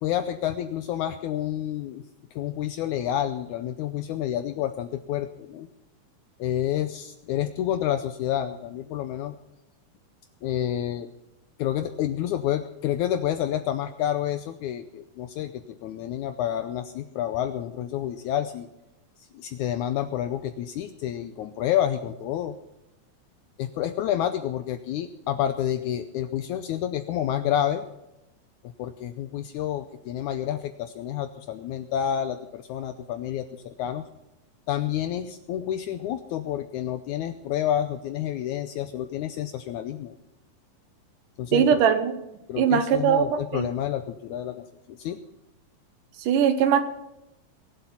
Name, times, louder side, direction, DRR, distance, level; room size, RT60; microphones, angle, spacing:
voice 1, 0.0-2.0 2.3-5.7 6.4-9.3 10.4-11.1 11.6-18.7 19.3-22.5 23.6-27.8 28.8-34.0 34.7-40.1 41.4-41.8 42.5-45.2, left 11 dB, 80° left, 10 dB, 1.8 m, -29 dB
voice 2, 41.5-42.1 42.6-43.7 46.2-46.8, right 8 dB, 70° right, 10 dB, 2.4 m, -21 dB
22.0 x 7.8 x 5.7 m, 0.91 s
omnidirectional pair, 4.1 m